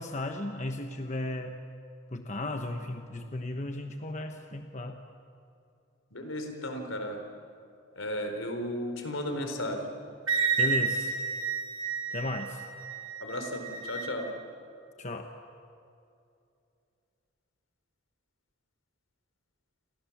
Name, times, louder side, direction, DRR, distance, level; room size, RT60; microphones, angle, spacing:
voice 1, 0.0-1.6 2.1-5.0 10.6-11.2 12.1-12.6 15.0-15.3, left 1 dB, 35° left, 5 dB, 1.2 m, -35 dB
voice 2, 6.1-7.2 8.0-9.9 13.2-14.3, left 1 dB, 80° left, 5 dB, 4.3 m, -34 dB
Wind instrument woodwind instrument, 10.3-14.1, right 5 dB, 75° right, 2.3 m, -31 dB
29.0 x 28.0 x 7.3 m, 2.6 s
head